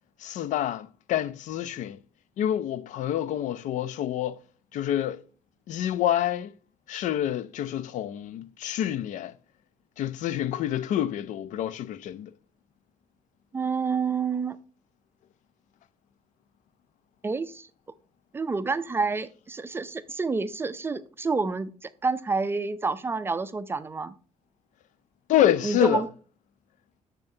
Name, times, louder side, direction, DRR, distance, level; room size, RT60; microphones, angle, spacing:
voice 1, 0.2-2.0 2.4-4.4 4.7-5.2 5.7-6.5 6.9-9.3 10.0-12.3 25.3-26.0, left 11 dB, 75° left, 0.5 m, -27 dB
voice 2, 13.5-14.6 17.2-17.7 18.3-24.1 25.6-26.1, right 4 dB, 20° right, 0.4 m, -28 dB
7.1 x 6.7 x 2.7 m
cardioid pair, 165°, 13 cm